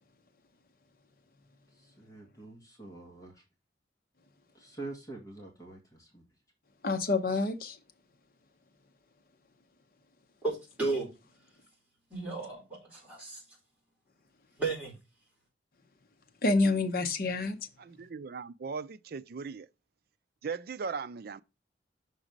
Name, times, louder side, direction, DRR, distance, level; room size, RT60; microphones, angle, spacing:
voice 1, 1.7-3.4 4.5-6.3, right 2 dB, 20° left, 1.7 m, -46 dB
voice 2, 6.8-7.8 16.4-17.6, left 3 dB, 55° left, 0.8 m, -27 dB
voice 3, 10.4-11.1 12.1-13.4 14.6-14.9, right 3 dB, 10° right, 4.0 m, -33 dB
voice 4, 17.8-19.7 20.4-21.4, right 5 dB, 55° right, 0.4 m, -38 dB
6.2 x 4.0 x 5.2 m
head